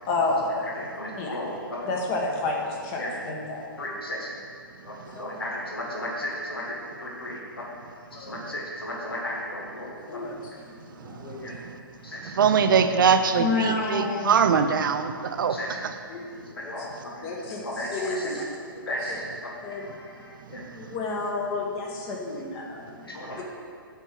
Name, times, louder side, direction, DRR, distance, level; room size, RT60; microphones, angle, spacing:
voice 1, 0.1-0.6 1.2-1.4 1.9-3.7 5.1-5.4 8.1-8.3 10.1-10.3 11.1-11.6 13.4-14.4 16.1-16.7 17.2-17.6 17.9-18.4 19.6-19.8 20.7-23.0 23.4-23.5, left 3 dB, 35° left, -1 dB, 1.2 m, -30 dB
voice 2, 0.6-1.9 2.7-3.2 3.8-4.3 4.8-7.8 8.2-10.3 11.0-11.6 12.0-12.3 15.5-15.8 16.5-18.4 18.8-20.7 22.3-22.4 23.0-23.4, left 1 dB, 85° left, -2 dB, 1.5 m, -35 dB
voice 3, 11.0-11.8 12.2-15.6 15.8-15.9 20.5-21.0, right 6 dB, 60° right, 9 dB, 0.6 m, -23 dB
8.2 x 4.4 x 5.9 m, 2.2 s
hypercardioid pair, 130°, 12 cm